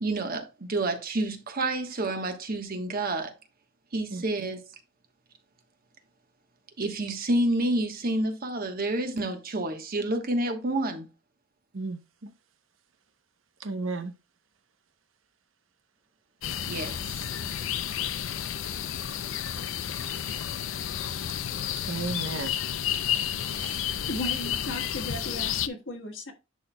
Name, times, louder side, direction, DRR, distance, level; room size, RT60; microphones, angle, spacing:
voice 1, 0.0-3.3 3.9-4.6 6.8-11.1 16.7-17.1, right 2 dB, 50° right, 1.2 m, -29 dB
voice 2, 11.7-12.3 13.6-14.1 21.9-22.6 23.4-23.8, right 3 dB, 85° right, 0.8 m, -34 dB
sound 1, 16.4-25.7, left 9 dB, 85° left, 0.5 m, -31 dB
voice 3, 24.1-26.3, left 1 dB, 70° left, 1.4 m, -36 dB
10.5 x 4.2 x 2.2 m
head